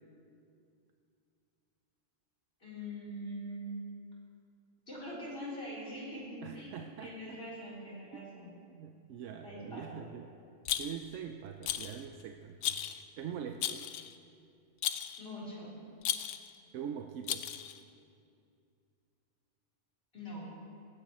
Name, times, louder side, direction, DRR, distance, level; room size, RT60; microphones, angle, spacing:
voice 1, 2.6-3.8 4.9-8.5 9.4-10.0 15.2-15.7 20.1-20.5, equal, 50° left, -8 dB, 4.1 m, -43 dB
voice 2, 6.4-7.5 8.1-8.3 8.7-10.3 10.8-12.8 13.2-13.9 16.7-17.5, right 8 dB, 80° right, 5 dB, 0.9 m, -43 dB
Rattle, 10.7-11.2 11.6-12.0 12.6-13.0 13.6-14.1 14.8-15.2 16.0-16.5 17.3-17.8, left 10 dB, 75° left, 0.9 m, -35 dB
17.5 x 15.0 x 3.1 m, 2.5 s
omnidirectional pair, 1.3 m